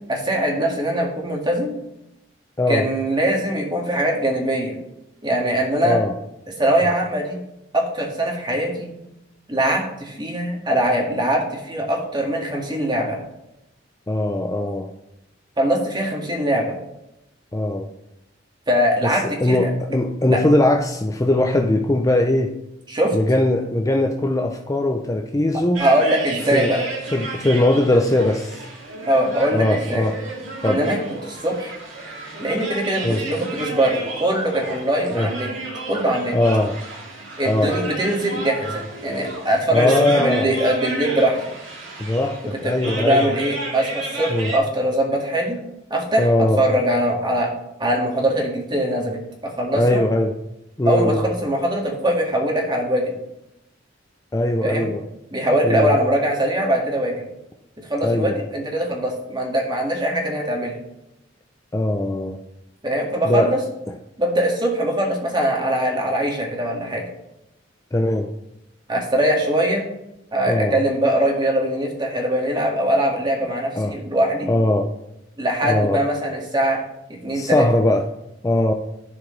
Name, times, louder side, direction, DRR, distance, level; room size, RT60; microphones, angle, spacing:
voice 1, 0.1-1.8 2.7-4.7 5.2-6.0 6.6-7.4 7.7-8.9 9.5-13.2 15.6-16.8 18.7-19.7 20.3-20.4 22.9-23.2 25.8-26.8 29.1-30.1 30.6-31.8 32.4-35.5 35.9-36.3 37.4-41.4 42.6-45.6 45.9-47.5 47.8-50.0 50.8-53.1 54.6-54.9 55.3-57.3 57.8-60.8 62.8-63.6 64.2-67.0 68.9-69.8 70.3-74.5 75.4-76.8 77.2-77.7, right 1 dB, 25° right, 0 dB, 1.8 m, -22 dB
voice 2, 5.8-6.1 14.1-14.9 17.5-17.9 19.0-22.5 23.1-25.8 26.5-26.7 27.1-28.7 29.5-30.1 30.6-30.8 33.0-33.2 35.1-35.3 36.3-36.8 37.4-37.8 39.7-40.6 42.0-43.3 44.3-44.5 46.2-46.6 49.7-50.3 50.8-51.2 54.3-55.0 55.6-56.0 58.0-58.4 61.7-62.4 63.2-63.5 63.9-64.0 67.9-68.3 70.5-70.8 73.8-74.0 74.5-74.9 75.6-76.0 77.3-78.0 78.4-78.7, left 1 dB, 15° left, 3 dB, 0.5 m, -20 dB
sound 1, 25.7-44.6, right 2 dB, 80° right, 2.3 m, -33 dB
14.0 x 4.9 x 3.2 m, 0.86 s
head